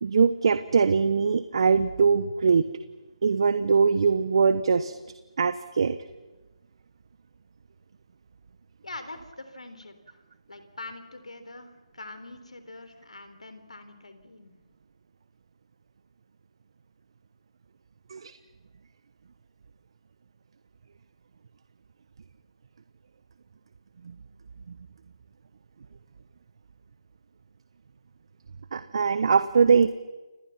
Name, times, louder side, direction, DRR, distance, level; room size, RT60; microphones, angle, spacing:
voice 1, 0.0-2.6 3.2-4.9 5.4-6.0 18.1-18.3 28.7-29.9, right 5 dB, 50° right, 12 dB, 1.2 m, -22 dB
voice 2, 8.8-14.6, left 2 dB, 75° left, 9 dB, 3.9 m, -44 dB
29.5 x 26.5 x 6.0 m, 1.2 s
figure-of-eight pair, 150°, 3 cm